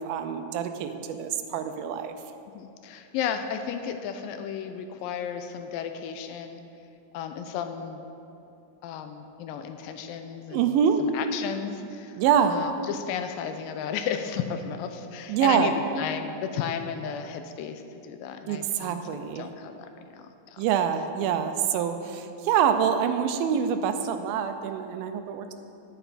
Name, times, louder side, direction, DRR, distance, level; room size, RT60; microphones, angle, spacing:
voice 1, 0.0-2.1 10.5-11.0 12.2-12.6 15.3-15.7 18.5-19.5 20.6-25.5, right 8 dB, 85° right, 8 dB, 2.4 m, -25 dB
voice 2, 2.5-6.6 7.1-8.0 8.8-12.1 12.5-19.9 20.2-20.6, left 7 dB, 80° left, 8 dB, 2.2 m, -34 dB
10.0 x 10.0 x 4.2 m, 2.8 s
omnidirectional pair, 4.2 m